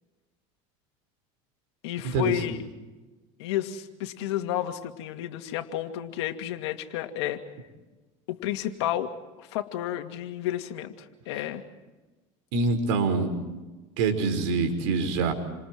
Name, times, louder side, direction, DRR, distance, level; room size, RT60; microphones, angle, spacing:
voice 1, 1.8-2.6 3.4-7.4 8.3-11.6, left 12 dB, 90° left, 6 dB, 2.5 m, -31 dB
voice 2, 12.5-13.3 14.0-15.3, right 4 dB, 80° right, 6 dB, 5.3 m, -25 dB
29.0 x 26.5 x 4.7 m, 1.2 s
supercardioid pair, 130°, 14 cm